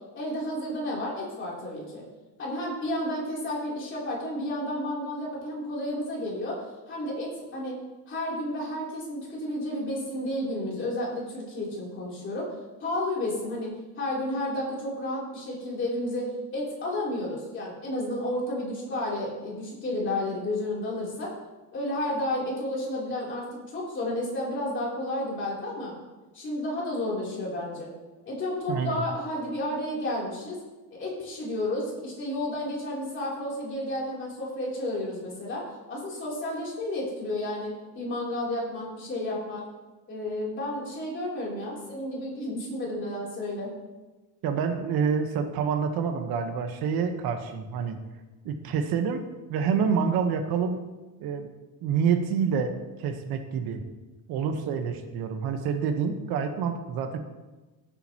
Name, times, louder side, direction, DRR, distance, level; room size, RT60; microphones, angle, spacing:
voice 1, 0.1-2.0 2.4-7.8 8.1-12.5 12.8-13.7 14.0-21.3 21.7-25.9 26.3-27.9 28.2-30.6 30.9-39.7 40.1-43.7, left 1 dB, 30° left, -4 dB, 3.3 m, -31 dB
voice 2, 28.7-29.0 44.4-48.0 48.4-50.8 51.2-51.5 51.8-53.8 54.3-57.2, right 6 dB, 65° right, 6 dB, 1.2 m, -27 dB
17.0 x 8.8 x 3.0 m, 1.2 s
cardioid pair, 180°, 39 cm